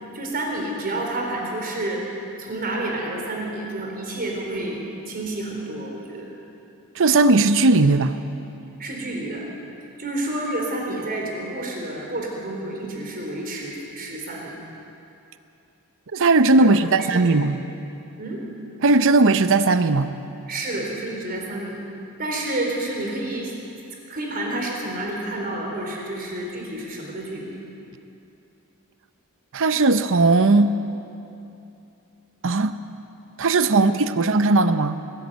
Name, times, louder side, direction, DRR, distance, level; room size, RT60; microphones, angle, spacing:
voice 1, 0.1-2.0 2.4-4.8 5.1-6.3 8.8-9.4 10.0-14.6 16.6-17.4 18.2-18.4 20.5-21.8 22.2-23.5 24.1-27.5 33.7-34.0, right 1 dB, 45° right, 0 dB, 4.2 m, -29 dB
voice 2, 7.0-8.2 16.1-17.6 18.8-20.1 29.5-30.8 32.4-32.8 33.4-35.0, right 3 dB, 60° right, 11 dB, 0.7 m, -18 dB
21.0 x 14.0 x 9.2 m, 2.8 s
head